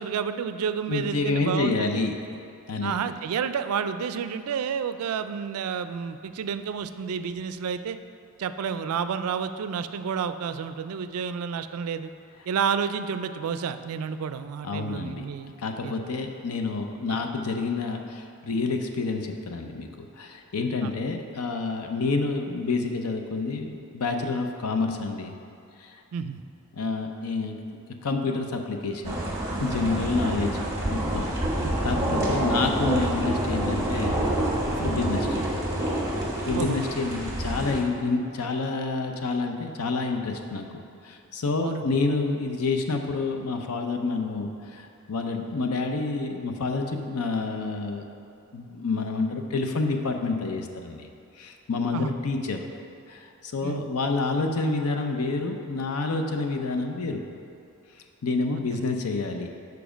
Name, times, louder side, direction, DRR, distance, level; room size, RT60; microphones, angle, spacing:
voice 1, 0.0-2.0 2.8-8.0 8.4-12.1 12.5-15.5 15.8-16.1 17.1-17.2 20.8-20.9 26.1-26.4 31.6-31.7 32.1-32.3 34.8-34.9 36.5-36.8 41.6-41.8 51.9-52.1 53.6-53.9 58.5-58.8, right 6 dB, 75° right, 11 dB, 0.3 m, -30 dB
voice 2, 0.9-2.1 2.7-2.9 14.6-15.3 15.6-19.9 20.2-25.3 25.8-25.9 26.7-27.6 28.0-29.2 29.6-30.6 30.9-31.2 31.5-34.2 34.8-35.4 36.5-40.6 41.0-48.0 48.5-51.1 51.4-52.6 53.1-57.2 58.2-59.5, left 3 dB, 85° left, 4 dB, 0.6 m, -28 dB
sound 1, 29.0-37.8, right 1 dB, 15° right, 1.1 m, -27 dB
7.1 x 4.7 x 5.0 m, 2.5 s
head